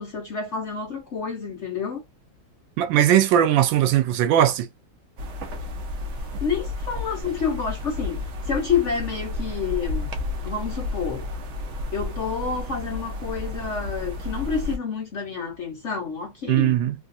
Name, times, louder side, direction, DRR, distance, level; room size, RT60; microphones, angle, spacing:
voice 1, 0.0-2.0 6.4-10.1 10.4-11.3 11.9-16.8, left 6 dB, 55° left, 0.8 m, -29 dB
voice 2, 2.8-4.7 16.5-16.9, right 11 dB, 85° right, 1.4 m, -19 dB
sound 1, 5.2-14.8, left 2 dB, 60° right, 0.7 m, -32 dB
3.2 x 2.4 x 2.5 m
omnidirectional pair, 2.0 m